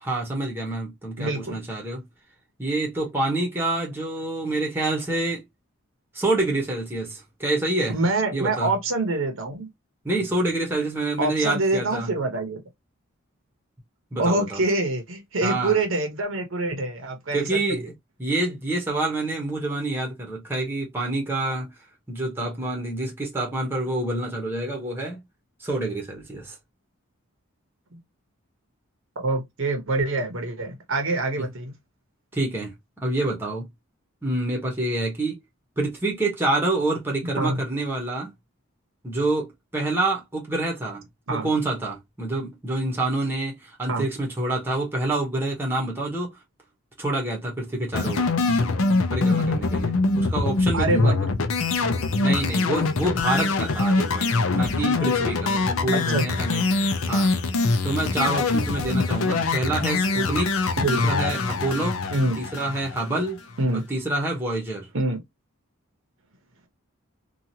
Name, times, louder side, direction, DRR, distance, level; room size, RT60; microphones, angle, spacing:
voice 1, 0.0-2.0 2.6-5.4 6.1-8.0 8.3-8.7 10.0-12.1 14.1-14.6 15.4-15.8 17.3-17.9 18.2-21.7 22.1-25.2 25.6-26.5 31.4-31.5 32.3-32.7 33.0-33.7 34.2-35.4 35.8-38.3 39.0-41.0 41.3-46.3 47.0-48.3 49.1-51.1 51.9-57.3 57.8-60.6 60.9-62.0 62.4-63.4 63.7-64.9, right 2 dB, 10° right, 0.9 m, -27 dB
voice 2, 1.2-1.6 7.9-9.7 11.2-12.6 14.2-17.9 27.9-28.0 29.2-31.7 37.4-37.6 41.3-41.5 43.9-44.1 50.7-51.2 55.9-56.2 60.8-61.2 62.1-62.4 63.6-63.8 64.9-65.2, right 2 dB, 65° right, 0.9 m, -25 dB
sound 1, 47.9-63.3, left 3 dB, 70° left, 0.5 m, -23 dB
2.9 x 2.4 x 2.7 m
head